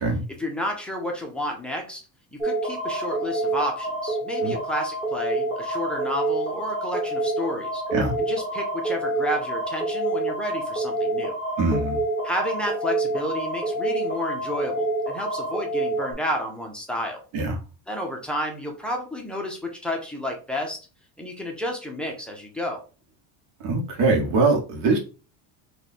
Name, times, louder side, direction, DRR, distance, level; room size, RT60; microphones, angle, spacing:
voice 1, 0.4-2.0 2.3-7.8 8.2-11.4 12.2-17.2 17.9-20.8 21.2-22.8, equal, 5° left, 1 dB, 0.5 m, -31 dB
sound 1, 2.4-16.1, right 2 dB, 15° right, 1.1 m, -27 dB
voice 2, 11.6-12.0 17.3-17.6 23.6-25.0, right 3 dB, 55° right, 2 dB, 1.1 m, -22 dB
3.1 x 2.3 x 4.1 m, 0.34 s
cardioid pair, 155°, 39 cm